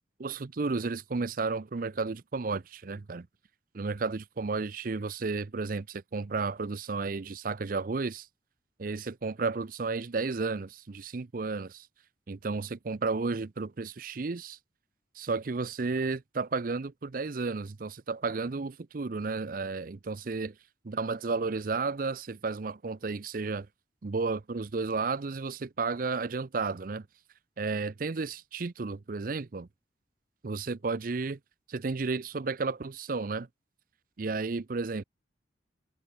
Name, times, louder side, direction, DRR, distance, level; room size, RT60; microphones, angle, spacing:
voice 1, 0.2-3.3 3.7-8.3 8.8-11.9 12.3-14.6 15.2-20.5 20.8-23.7 24.0-27.1 27.6-29.7 30.4-31.4 31.7-33.5 34.2-35.0, right 4 dB, 50° right, 0.5 m, -32 dB
head